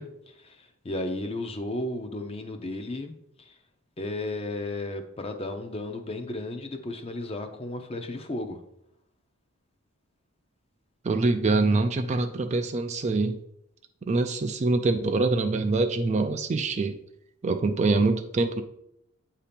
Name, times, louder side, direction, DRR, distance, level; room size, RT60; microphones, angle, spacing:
voice 1, 0.0-3.1 3.5-3.6 4.0-8.6, left 2 dB, 25° left, 6 dB, 0.6 m, -34 dB
voice 2, 11.0-13.4 14.1-17.0 17.4-18.6, right 3 dB, 30° right, 7 dB, 0.3 m, -24 dB
8.4 x 2.8 x 5.1 m, 0.78 s
head